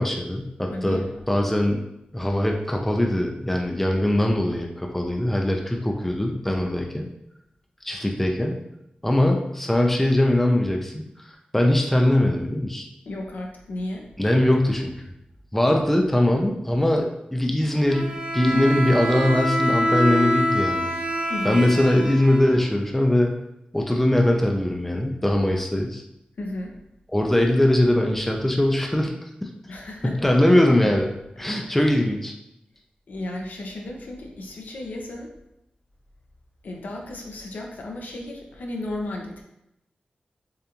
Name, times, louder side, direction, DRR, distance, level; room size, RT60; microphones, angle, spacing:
voice 1, 0.0-1.8 2.1-7.1 7.8-8.6 9.0-11.0 11.5-12.9 14.2-14.9 15.5-17.0 17.3-20.9 21.4-23.3 23.7-26.0 27.1-29.1 29.4-29.5 30.0-31.1 31.4-32.3, left 1 dB, 10° left, 1 dB, 0.6 m, -21 dB
voice 2, 0.7-1.2 13.1-14.1 15.7-15.8 21.3-21.6 26.4-26.7 29.7-30.3 31.6-31.8 33.1-35.3 36.6-39.4, left 1 dB, 80° left, 1 dB, 0.8 m, -34 dB
Bowed string instrument, 17.9-22.9, equal, 50° right, 0.9 m, -25 dB
6.8 x 2.6 x 2.9 m, 0.85 s
wide cardioid pair, 115°, 3 cm